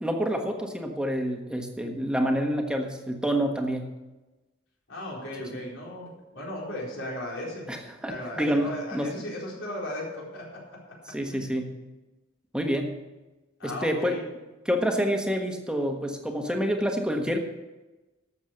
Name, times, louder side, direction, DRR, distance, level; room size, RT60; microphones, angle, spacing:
voice 1, 0.0-3.9 7.7-9.1 11.1-11.7 12.5-12.9 13.6-14.2 14.6-17.4, equal, 5° right, 3 dB, 1.4 m, -28 dB
voice 2, 4.9-7.7 8.1-10.9 11.3-11.6 13.6-14.3, left 1 dB, 80° left, -4 dB, 4.4 m, -36 dB
12.5 x 7.4 x 6.4 m, 1.1 s
head